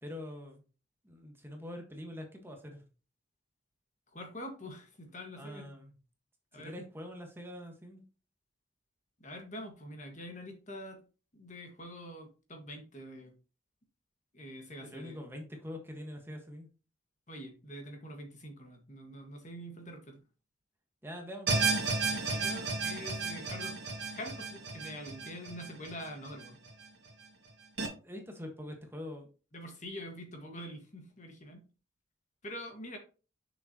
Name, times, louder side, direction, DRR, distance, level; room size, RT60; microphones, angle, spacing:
voice 1, 0.0-0.6 1.0-2.8 5.4-5.9 6.5-8.0 14.8-16.7 21.0-21.8 28.0-29.3, left 1 dB, 10° right, 2 dB, 1.4 m, -44 dB
voice 2, 4.1-5.7 6.5-6.8 9.2-11.0 11.3-13.3 14.3-15.2 17.3-20.2 22.1-26.6 29.5-31.6 32.4-33.0, equal, 40° left, 4 dB, 1.7 m, -45 dB
sound 1, 21.5-26.7 27.1-27.2 27.8-27.9, right 4 dB, 65° right, 2.0 m, -33 dB
6.9 x 6.5 x 2.9 m, 0.34 s
head